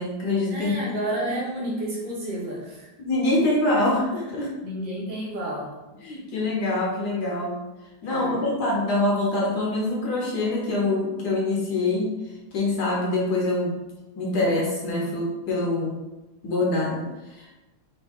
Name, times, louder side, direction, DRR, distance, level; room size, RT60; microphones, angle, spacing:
voice 1, 0.0-1.3 3.0-4.5 6.0-7.6 8.0-12.2 12.5-13.8 14.1-16.0 16.4-17.6, left 2 dB, 65° left, -3 dB, 1.3 m, -25 dB
voice 2, 0.5-2.9 4.6-5.7 8.1-8.4, right 1 dB, 65° right, -5 dB, 1.8 m, -30 dB
4.0 x 2.8 x 3.5 m, 1.1 s
omnidirectional pair, 2.1 m